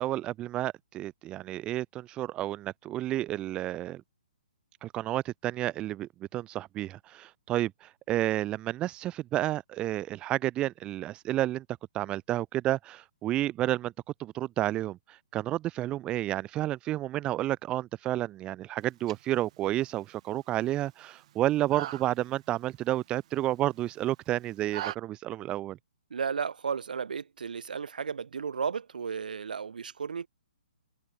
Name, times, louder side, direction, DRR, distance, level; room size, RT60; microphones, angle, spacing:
voice 1, 0.0-4.0 4.8-11.6 11.9-13.9 14.2-25.8, right 14 dB, 20° right, 1.0 m, -31 dB
sound 1, 18.8-25.0, right 13 dB, 45° right, 6.9 m, -44 dB
voice 2, 26.1-30.3, right 6 dB, 65° right, 1.5 m, -34 dB
figure-of-eight pair, 130°, 5 cm